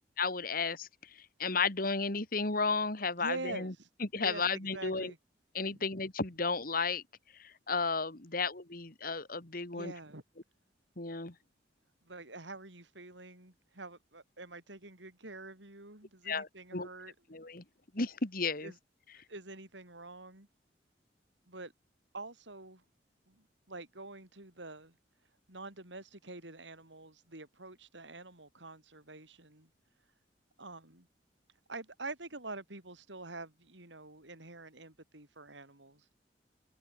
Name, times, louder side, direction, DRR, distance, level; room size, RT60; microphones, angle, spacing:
voice 1, 0.2-0.9 1.4-3.7 4.0-5.1 5.5-7.0 7.4-9.9 11.0-11.3 16.2-16.9 17.3-17.6 17.9-18.7, left 4 dB, 50° left, 2.4 m, -33 dB
voice 2, 3.2-3.9 4.1-5.2 5.7-5.8 9.7-10.2 12.0-17.1 18.6-18.8 19.3-20.5 21.5-21.7 22.1-22.8 23.3-25.0 25.5-29.7 30.6-31.1 31.7-36.0, right 2 dB, 85° right, 5.6 m, -46 dB
head